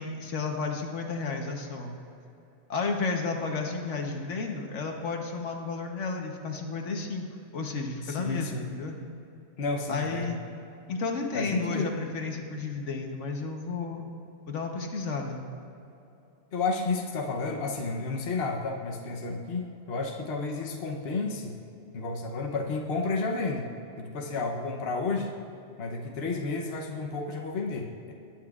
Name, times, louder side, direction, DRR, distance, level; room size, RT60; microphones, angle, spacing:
voice 1, 0.0-1.9 2.7-7.2 7.5-9.0 9.9-10.4 10.9-14.0 14.5-15.4, left 4 dB, 80° left, 2 dB, 1.4 m, -32 dB
voice 2, 8.0-8.7 9.6-10.3 11.3-11.9 16.5-21.6 21.9-25.3 25.8-28.1, left 3 dB, 60° left, 1 dB, 1.0 m, -31 dB
19.5 x 8.7 x 2.4 m, 2.8 s
omnidirectional pair, 1.2 m